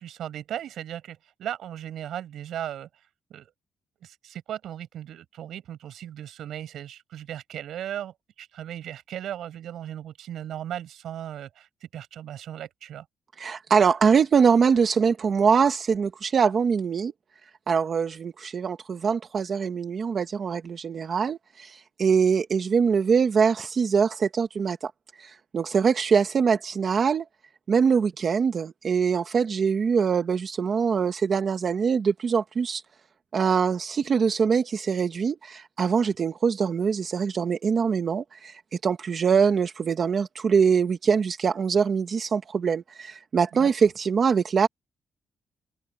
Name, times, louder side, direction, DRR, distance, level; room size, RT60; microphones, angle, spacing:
voice 1, 0.0-2.9 3.3-3.5 4.0-13.1 43.5-43.7, right 11 dB, 75° right, 7.2 m, -37 dB
voice 2, 13.4-17.1 17.4-27.2 27.7-32.8 33.3-44.7, right 6 dB, 40° right, 1.1 m, -23 dB
wide cardioid pair, 165°, 0 cm